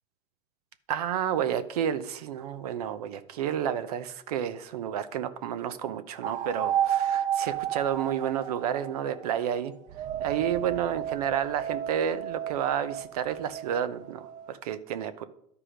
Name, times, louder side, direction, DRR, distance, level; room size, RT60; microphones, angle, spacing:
voice 1, 0.9-9.7 10.2-15.2, right 9 dB, 90° right, 12 dB, 0.8 m, -30 dB
sound 1, 6.2-9.4 9.9-14.5, right 10 dB, 40° right, 0.5 m, -32 dB
11.5 x 4.9 x 5.0 m, 0.72 s
supercardioid pair, 120°, 19 cm